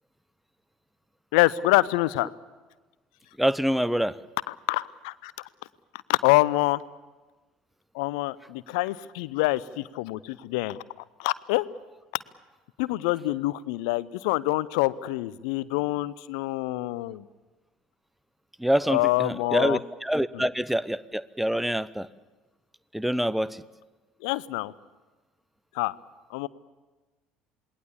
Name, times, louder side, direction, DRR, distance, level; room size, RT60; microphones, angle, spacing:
voice 1, 1.3-2.3 4.5-5.5 6.1-6.8 7.9-10.8 11.2-11.6 12.8-17.2 18.9-19.8 20.3-20.4 24.2-24.7 25.7-25.9 26.3-26.5, left 19 dB, 60° left, 19 dB, 0.7 m, -26 dB
voice 2, 3.4-4.2 18.6-22.1 22.9-23.6, equal, 5° right, 17 dB, 0.8 m, -26 dB
27.5 x 21.0 x 7.3 m, 1.2 s
figure-of-eight pair, 60°, 4 cm